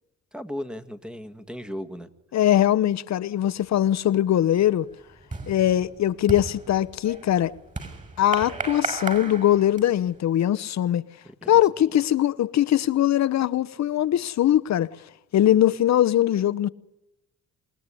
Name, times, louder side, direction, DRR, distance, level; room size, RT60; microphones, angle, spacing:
voice 1, 0.3-2.1 11.2-11.6, equal, 5° right, 1.9 m, -36 dB
voice 2, 2.3-4.9 5.5-7.5 8.2-11.0 11.5-14.9 15.3-16.7, left 12 dB, 65° left, 1.0 m, -21 dB
sound 1, 3.7-4.0 4.4-10.2, right 4 dB, 25° right, 6.3 m, -35 dB
28.0 x 19.0 x 9.9 m
cardioid pair, 90°, 30 cm